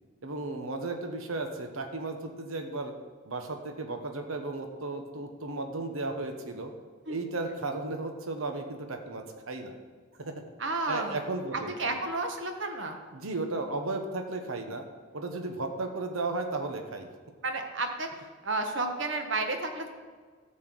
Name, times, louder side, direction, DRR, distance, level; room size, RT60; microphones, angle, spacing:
voice 1, 0.2-2.9 3.3-6.7 7.1-9.8 10.2-10.3 10.9-11.7 13.1-14.8 15.1-17.1, right 2 dB, 90° right, 5 dB, 1.1 m, -34 dB
voice 2, 10.6-11.2 11.5-13.0 17.4-19.9, right 2 dB, 65° right, 5 dB, 1.2 m, -32 dB
12.5 x 4.4 x 7.7 m, 1.5 s
head